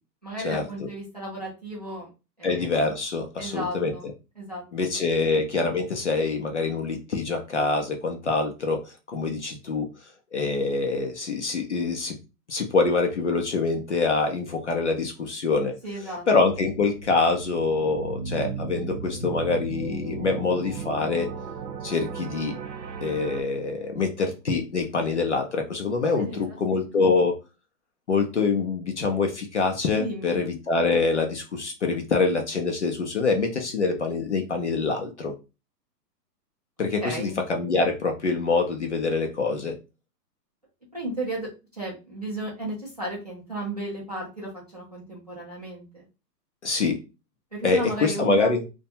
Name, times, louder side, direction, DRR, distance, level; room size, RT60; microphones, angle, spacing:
voice 1, 0.2-2.1 2.4-2.7 3.4-4.1 4.4-4.6 15.8-16.2 26.2-26.6 30.0-30.4 37.0-37.4 40.9-46.0 47.5-48.5, right 1 dB, 25° right, -5 dB, 0.5 m, -34 dB
voice 2, 2.4-3.9 4.7-8.8 9.1-9.9 10.3-12.2 12.5-15.8 16.3-21.3 21.8-22.6 23.0-27.4 28.1-35.3 36.8-39.7 46.6-47.0 47.6-48.6, left 4 dB, 45° left, 3 dB, 0.5 m, -25 dB
sound 1, 16.5-23.4, right 5 dB, 85° right, 0.8 m, -35 dB
2.5 x 2.2 x 2.7 m, 0.29 s
hypercardioid pair, 170°, 50 cm